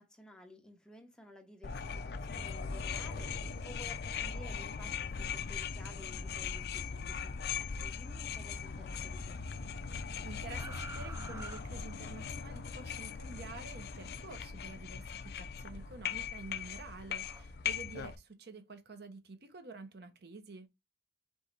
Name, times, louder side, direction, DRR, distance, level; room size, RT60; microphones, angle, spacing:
voice 1, 0.0-7.3 7.6-9.4, left 1 dB, 5° left, 0.8 m, -54 dB
sound 1, 1.6-18.2, left 6 dB, 60° left, 0.4 m, -40 dB
sound 2, 2.2-8.6 8.9-12.3 13.7-14.9 15.6-18.2, right 2 dB, 15° right, 0.3 m, -54 dB
voice 2, 10.2-20.7, right 3 dB, 60° right, 0.8 m, -49 dB
4.7 x 2.7 x 3.9 m
head